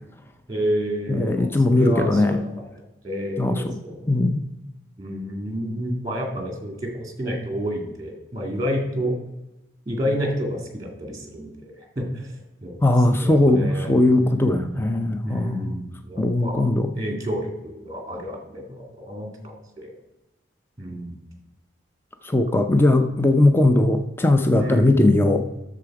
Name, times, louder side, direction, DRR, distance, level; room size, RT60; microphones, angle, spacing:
voice 1, 0.5-2.6 3.0-4.1 5.0-9.1 9.9-12.8 13.1-14.7 15.2-16.7 17.0-19.9 20.8-21.1 24.6-24.9, equal, 20° right, 3 dB, 2.0 m, -30 dB
voice 2, 1.1-2.4 3.4-3.8 4.1-4.4 12.8-15.7 16.2-16.9 22.2-25.5, left 2 dB, 10° left, 7 dB, 0.5 m, -19 dB
10.0 x 7.0 x 4.7 m, 0.98 s
head